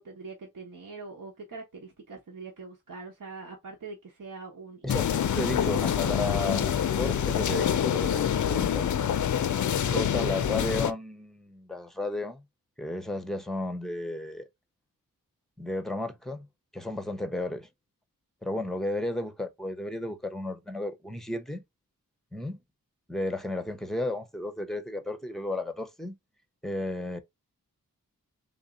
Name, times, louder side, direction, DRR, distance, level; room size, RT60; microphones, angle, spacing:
voice 1, 0.0-5.4 10.1-10.2, right 4 dB, 65° right, 1.3 m, -43 dB
voice 2, 4.8-9.0 9.9-12.4 12.8-14.4 15.6-16.5 16.7-17.7 18.4-21.6 22.3-22.6 23.1-26.2 26.6-27.2, left 1 dB, ahead, 0.7 m, -33 dB
sound 1, 4.9-10.9, left 9 dB, 55° left, 0.5 m, -26 dB
3.7 x 2.8 x 3.7 m
wide cardioid pair, 70°, 35 cm